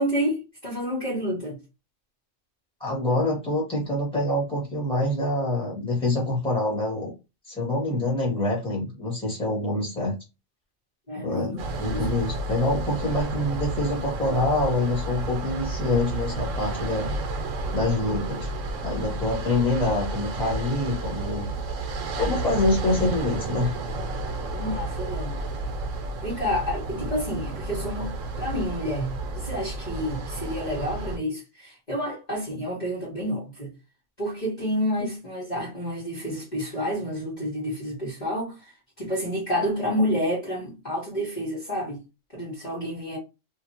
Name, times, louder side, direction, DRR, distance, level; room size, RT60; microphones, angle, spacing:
voice 1, 0.0-1.6 7.9-8.0 11.1-11.6 11.9-12.1 24.5-25.3 26.2-33.7 34.2-42.0 42.3-43.2, equal, 35° left, 1.2 m, -29 dB
voice 2, 2.8-7.1 7.5-10.1 11.2-17.2 17.7-18.5 18.8-21.5 22.1-23.7, left 2 dB, 5° left, 1.4 m, -26 dB
sound 1, 11.6-31.2, right 2 dB, 75° right, 1.0 m, -31 dB
2.7 x 2.5 x 2.7 m
omnidirectional pair, 1.3 m